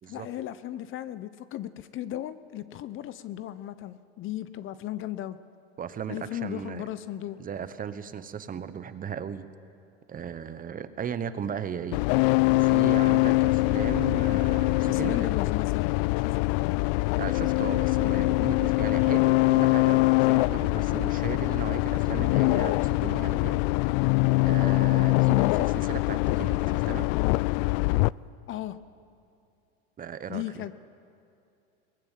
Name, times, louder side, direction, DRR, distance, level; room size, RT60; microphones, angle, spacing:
voice 1, 0.1-5.4 6.1-7.4 14.8-16.8 28.5-28.8 30.3-30.7, left 12 dB, 40° left, 15 dB, 0.8 m, -36 dB
voice 2, 5.8-6.9 7.4-9.5 10.1-12.0 12.5-15.3 17.2-23.6 24.3-27.1 30.0-30.6, right 7 dB, 25° right, 12 dB, 1.1 m, -36 dB
sound 1, 11.9-28.1, left 23 dB, 60° left, 0.4 m, -23 dB
22.5 x 20.0 x 7.5 m, 2.6 s
supercardioid pair, 105°, 31 cm